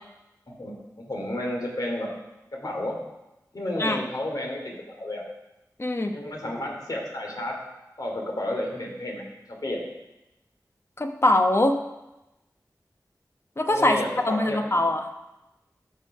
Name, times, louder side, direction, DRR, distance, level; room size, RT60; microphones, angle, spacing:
voice 1, 1.1-2.1 2.5-3.0 3.5-5.2 6.1-7.6 8.0-9.8 13.7-14.6, left 1 dB, 65° left, -1 dB, 2.8 m, -31 dB
voice 2, 5.8-6.2 11.0-11.8 13.6-15.1, left 1 dB, 40° left, 5 dB, 1.0 m, -23 dB
13.0 x 5.5 x 4.8 m, 0.96 s
wide cardioid pair, 70°, 7 cm